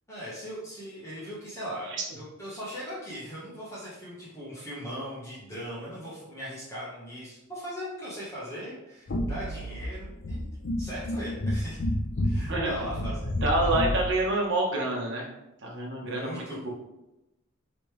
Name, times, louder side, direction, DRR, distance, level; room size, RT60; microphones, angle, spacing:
voice 1, 0.1-10.5 10.8-11.8 12.2-13.4 16.0-16.7, equal, 15° left, -8 dB, 1.3 m, -39 dB
sound 1, 9.1-14.1, left 1 dB, 60° left, 0.6 m, -30 dB
voice 2, 12.3-12.7 13.4-15.3 15.6-16.7, right 2 dB, 60° right, -1 dB, 1.2 m, -27 dB
5.3 x 3.2 x 3.2 m, 0.91 s
head